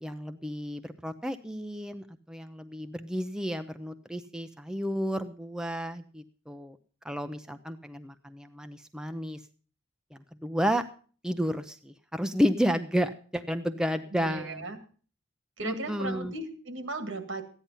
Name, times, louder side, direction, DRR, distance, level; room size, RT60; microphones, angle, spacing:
voice 1, 0.0-6.8 7.0-9.4 10.1-10.8 11.2-14.7 15.6-16.3, equal, 5° right, 8 dB, 0.5 m, -31 dB
voice 2, 14.1-14.8 15.6-17.4, right 2 dB, 75° right, 8 dB, 2.0 m, -36 dB
14.0 x 10.0 x 5.5 m, 0.41 s
head